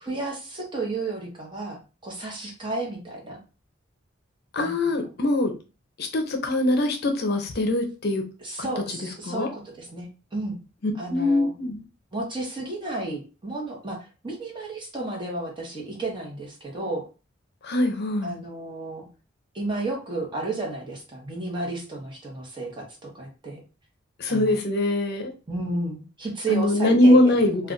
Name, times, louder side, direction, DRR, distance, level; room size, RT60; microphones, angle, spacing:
voice 1, 0.0-3.4 4.6-5.1 8.4-10.6 11.0-11.5 12.1-17.0 18.2-19.0 19.5-23.6 24.3-24.6 25.5-27.7, right 2 dB, 25° right, -1 dB, 0.9 m, -32 dB
voice 2, 4.5-5.5 6.0-8.2 9.3-9.5 10.8-11.8 17.6-18.4 24.2-25.3 26.5-27.7, left 1 dB, 55° left, 4 dB, 0.6 m, -22 dB
2.3 x 2.3 x 3.7 m, 0.32 s
head